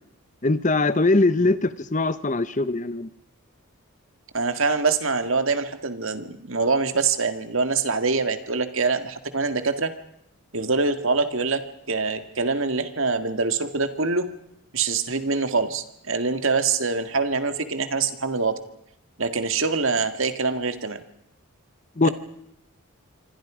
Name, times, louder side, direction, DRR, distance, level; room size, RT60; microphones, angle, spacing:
voice 1, 0.4-3.1 22.0-22.1, left 2 dB, 35° left, 14 dB, 0.9 m, -21 dB
voice 2, 4.3-9.9 10.5-14.3 14.7-18.6 19.2-21.0 22.0-22.1, right 4 dB, 65° right, 9 dB, 1.9 m, -24 dB
27.5 x 25.0 x 5.0 m, 0.79 s
head